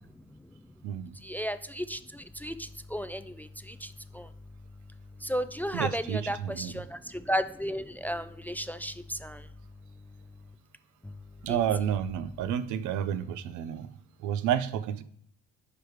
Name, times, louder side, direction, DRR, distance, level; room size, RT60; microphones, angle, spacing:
voice 1, 0.1-10.5 11.0-11.6, equal, 5° left, 12 dB, 0.3 m, -36 dB
voice 2, 0.8-1.2 5.7-6.7 11.4-13.9 14.2-15.0, right 9 dB, 85° right, 13 dB, 0.5 m, -30 dB
4.9 x 4.5 x 4.7 m, 0.66 s
cardioid pair, 80°, 29 cm